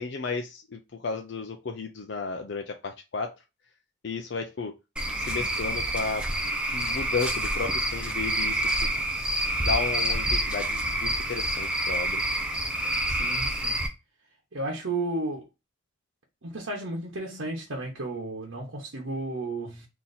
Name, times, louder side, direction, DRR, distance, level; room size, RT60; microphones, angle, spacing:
voice 1, 0.0-3.3 4.0-4.7 5.2-6.3 6.7-8.9 9.6-12.2, left 4 dB, 60° left, 0.5 m, -33 dB
Cricket / Frog, 5.0-13.9, right 1 dB, 5° right, 0.6 m, -28 dB
voice 2, 13.1-13.9 14.5-15.4 16.4-19.9, right 2 dB, 90° right, 1.1 m, -33 dB
3.9 x 2.9 x 4.1 m
head